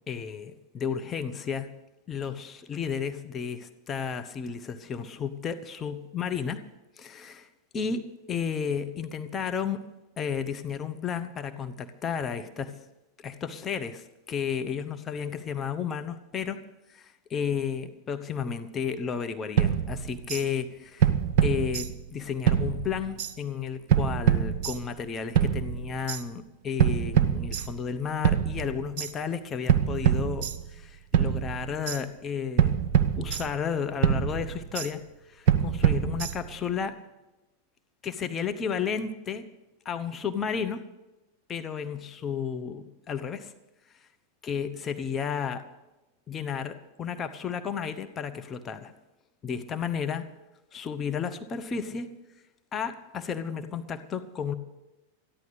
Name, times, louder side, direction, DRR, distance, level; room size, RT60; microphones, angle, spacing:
voice 1, 0.1-1.7 2.1-6.7 7.0-7.5 7.7-9.9 10.2-12.8 13.2-16.6 16.9-21.1 21.4-32.7 33.2-35.0 35.3-37.0 38.0-39.5 39.8-40.9 41.5-43.5 44.4-45.7 46.3-48.9 49.4-50.3 50.7-52.1 52.7-54.5, left 6 dB, 25° left, 8 dB, 0.8 m, -32 dB
sound 1, 19.6-20.4 21.0-22.2 22.5-23.3 23.9-25.0 25.3-26.2 26.8-27.9 28.2-29.1 29.7-30.9 31.1-32.0 32.6-33.7 34.0-34.9 35.5-36.6, right 9 dB, 45° right, 0.9 m, -25 dB
14.5 x 10.5 x 6.5 m, 1.0 s
figure-of-eight pair, 90°, 0 cm